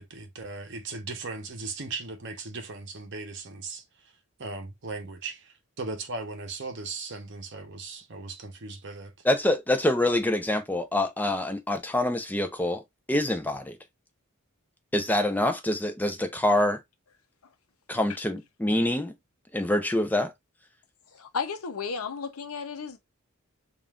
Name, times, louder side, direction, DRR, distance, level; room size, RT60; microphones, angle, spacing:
voice 1, 0.0-4.1 4.4-9.1, right 3 dB, 55° right, 0.9 m, -38 dB
voice 2, 9.2-12.8 13.1-13.8 14.9-16.8 17.9-19.1 19.5-20.3, left 1 dB, 10° left, 0.5 m, -25 dB
voice 3, 21.1-23.0, left 5 dB, 85° left, 0.8 m, -33 dB
5.3 x 2.5 x 2.4 m
head